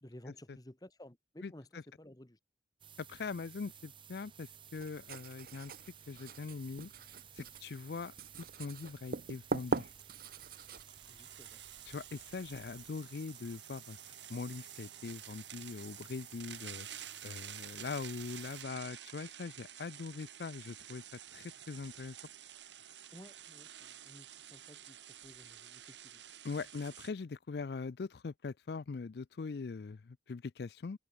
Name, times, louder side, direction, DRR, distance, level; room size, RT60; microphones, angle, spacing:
voice 1, 0.0-2.4 11.1-11.6 23.1-26.2, left 1 dB, 20° left, 1.2 m, -55 dB
sound 1, 2.8-18.6, right 8 dB, 25° right, 1.4 m, -56 dB
voice 2, 3.0-5.7 6.1-6.9 7.3-8.1 8.6-9.9 11.9-21.0 21.3-22.2 26.4-31.0, left 4 dB, 60° left, 0.4 m, -42 dB
Writing, 4.7-12.9, right 4 dB, 50° right, 0.6 m, -43 dB
sound 2, 8.6-8.7 9.3-27.1, right 10 dB, 80° right, 3.8 m, -51 dB
head